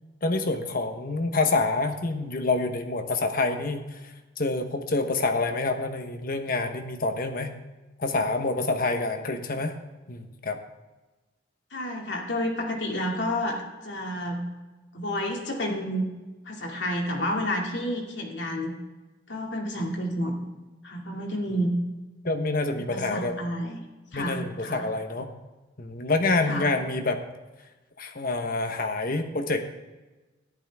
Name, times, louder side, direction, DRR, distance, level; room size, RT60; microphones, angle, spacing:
voice 1, 0.2-4.0 4.4-7.5 8.0-9.8 10.1-10.6 22.2-23.4 24.1-25.3 25.8-27.2 28.0-29.6, left 3 dB, 50° left, 6 dB, 1.1 m, -27 dB
voice 2, 11.7-14.4 14.9-16.0 16.5-18.7 19.3-20.3 20.8-21.7 22.9-23.8 24.1-24.8 26.5-26.7, equal, 70° left, 0 dB, 2.5 m, -30 dB
14.0 x 11.5 x 3.6 m, 1.2 s
head